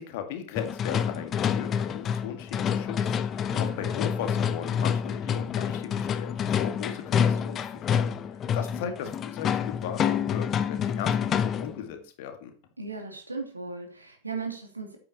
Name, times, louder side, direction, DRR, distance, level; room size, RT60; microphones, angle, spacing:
voice 1, 0.0-12.5, left 9 dB, 50° left, 6 dB, 2.0 m, -38 dB
sound 1, 0.6-11.8, left 8 dB, 25° left, 0.9 m, -28 dB
voice 2, 3.5-3.8 8.4-8.5 8.8-9.1 12.8-15.0, right 4 dB, 80° right, 3 dB, 2.8 m, -37 dB
9.7 x 8.8 x 4.3 m, 0.42 s
figure-of-eight pair, 90°, 0 cm